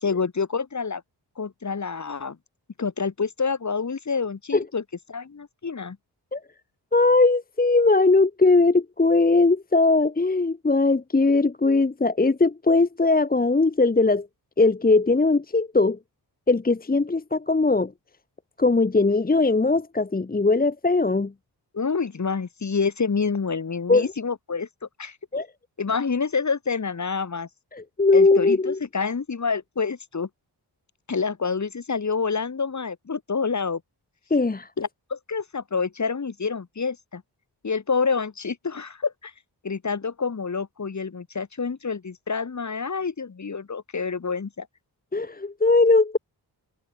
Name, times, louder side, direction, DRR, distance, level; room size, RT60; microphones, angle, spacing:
voice 1, 0.0-1.0 1.4-2.4 2.8-4.8 5.1-6.0 21.7-24.7 25.0-25.2 25.8-27.5 28.1-30.3 31.1-33.8 34.8-37.2 37.6-39.3 39.6-44.7, left 5 dB, 40° left, 2.5 m, -27 dB
voice 2, 6.9-14.3 14.6-16.0 16.5-17.9 18.6-21.3 23.9-24.1 25.3-25.5 27.7-28.8 34.3-34.7 45.1-46.2, left 3 dB, 20° left, 1.1 m, -20 dB
cardioid pair, 85°, 42 cm